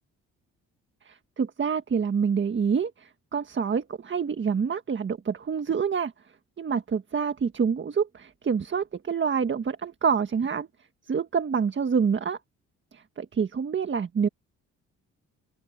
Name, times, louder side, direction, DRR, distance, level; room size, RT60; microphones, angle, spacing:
voice 1, 1.0-6.1 6.6-10.7 11.1-12.4 12.9-14.3, right 6 dB, 40° right, 1.7 m, -27 dB
open air
cardioid pair, 90°, 30 cm